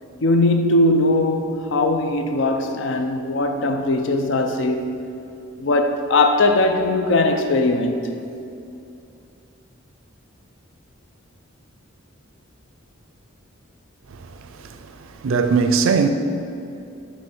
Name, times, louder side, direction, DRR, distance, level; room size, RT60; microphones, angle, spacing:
voice 1, 0.2-5.0 5.6-8.1, left 2 dB, 60° left, 0.5 m, -20 dB
voice 2, 15.2-16.1, right 5 dB, 75° right, 0.4 m, -18 dB
7.6 x 3.2 x 5.4 m
head